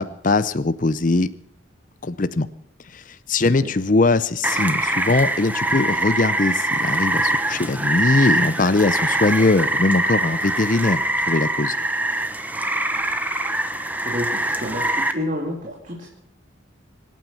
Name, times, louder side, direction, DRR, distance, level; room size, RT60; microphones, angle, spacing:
voice 1, 0.0-1.3 2.0-2.5 2.9-11.0 11.3-11.8, left 3 dB, 40° left, 13 dB, 0.6 m, -21 dB
Rain, 4.4-15.1, right 1 dB, 10° right, 1.1 m, -23 dB
voice 2, 14.0-16.1, left 1 dB, 40° right, 0 dB, 2.7 m, -29 dB
25.0 x 9.3 x 5.6 m, 0.69 s
head